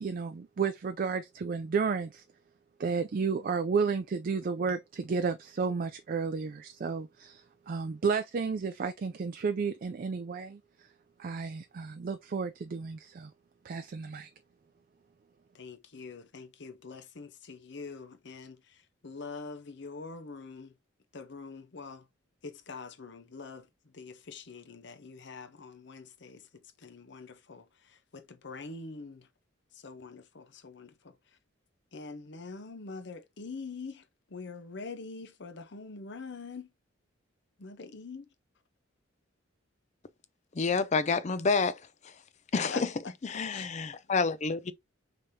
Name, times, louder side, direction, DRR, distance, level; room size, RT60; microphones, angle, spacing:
voice 1, 0.0-2.2 2.8-10.6 11.2-13.3 13.6-14.3, right 5 dB, 45° right, 0.4 m, -32 dB
voice 2, 15.5-20.7 21.1-22.1 22.4-29.3 29.7-31.2 31.9-36.7 37.6-38.3 42.7-42.8 43.5-43.7, left 4 dB, 60° left, 0.8 m, -44 dB
voice 3, 40.5-42.1 42.5-42.9 43.2-44.7, left 4 dB, 35° left, 0.4 m, -29 dB
5.1 x 3.4 x 2.7 m
head